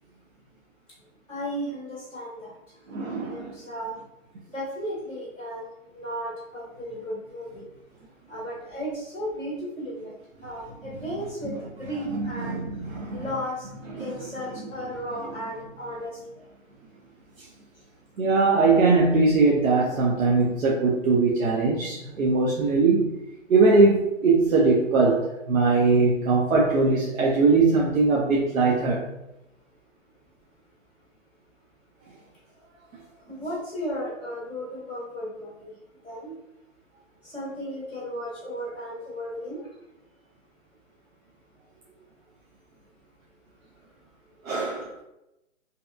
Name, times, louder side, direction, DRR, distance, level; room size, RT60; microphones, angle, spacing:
voice 1, 1.3-2.5 3.2-3.9 4.5-5.6 5.9-7.6 8.3-10.1 10.4-12.6 13.1-13.7 14.0-16.1 33.3-35.7 36.0-36.3 37.2-39.6, equal, 10° right, -16 dB, 0.4 m, -34 dB
voice 2, 2.9-3.5 12.1-13.3 14.0-14.1 18.2-23.1 23.5-29.0 44.4-44.9, right 3 dB, 90° right, -3 dB, 0.6 m, -21 dB
2.7 x 2.3 x 2.3 m, 0.91 s
hypercardioid pair, 155°, 39 cm